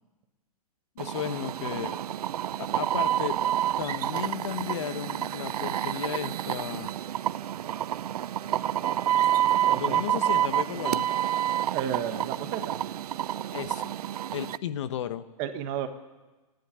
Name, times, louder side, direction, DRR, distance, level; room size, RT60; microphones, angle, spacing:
voice 1, 1.0-2.0 2.6-3.4 3.8-6.9 9.7-11.1 13.5-13.9 14.3-15.3, left 10 dB, 50° left, 12 dB, 1.0 m, -34 dB
sound 1, 1.0-14.6, right 11 dB, 80° right, 0.6 m, -28 dB
voice 2, 9.7-10.0 10.8-11.0 11.7-12.8 15.4-15.9, right 9 dB, 25° right, 9 dB, 1.2 m, -32 dB
28.5 x 10.5 x 9.8 m, 1.2 s
hypercardioid pair, 170°, 19 cm